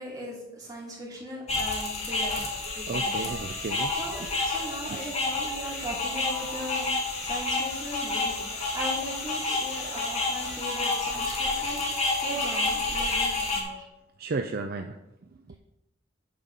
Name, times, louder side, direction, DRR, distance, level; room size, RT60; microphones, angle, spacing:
voice 1, 0.0-3.3 4.0-6.9 7.2-11.8 12.2-13.8, right 1 dB, 20° right, -5 dB, 3.0 m, -39 dB
sound 1, 1.5-13.6, left 3 dB, 35° left, 1.6 m, -29 dB
sound 2, 2.4-13.9, right 2 dB, 75° right, 1.4 m, -46 dB
voice 2, 2.7-3.9 4.5-5.0 14.2-15.0, right 3 dB, 50° right, 6 dB, 0.5 m, -34 dB
8.7 x 5.1 x 5.3 m, 0.93 s
head